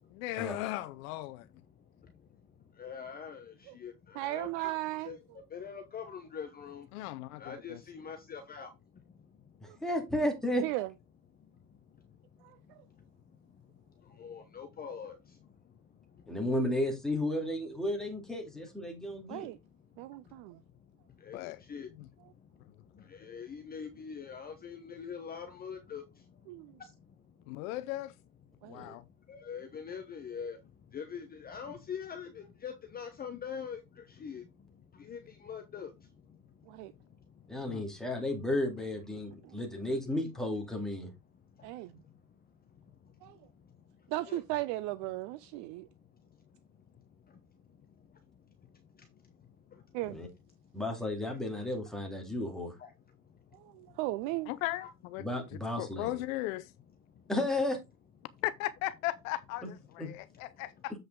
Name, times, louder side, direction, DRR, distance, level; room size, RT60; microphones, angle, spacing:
voice 1, 0.1-1.5 6.9-7.8 21.3-21.6 22.0-22.1 27.5-28.1 28.6-29.0 37.7-37.8 54.5-55.3 55.8-56.7 58.4-60.9, left 16 dB, 60° left, 0.7 m, -37 dB
voice 2, 1.9-4.7 5.0-5.2 5.5-7.1 7.4-9.8 11.4-16.4 18.9-19.5 20.1-27.6 28.6-37.7 39.3-39.5 41.3-44.4 45.8-46.6 46.9-50.0 50.6-50.8 52.8-54.0 54.8-54.9 57.1-57.3, left 7 dB, 20° left, 0.9 m, -47 dB
voice 3, 4.1-5.2 9.7-9.8 10.6-10.9 12.4-12.8 19.3-19.6 20.0-20.6 26.5-26.7 28.6-28.8 36.7-36.9 39.4-39.6 41.6-42.0 43.2-43.4 44.1-45.9 49.9-50.2 53.5-54.5, right 18 dB, 40° right, 0.4 m, -36 dB
voice 4, 9.6-10.6 16.3-19.5 28.7-28.9 37.5-41.1 50.1-50.3 50.7-52.7 55.2-56.1 57.3-57.8 60.0-60.1, left 1 dB, ahead, 2.4 m, -33 dB
7.8 x 5.3 x 3.7 m
supercardioid pair, 125°, 48 cm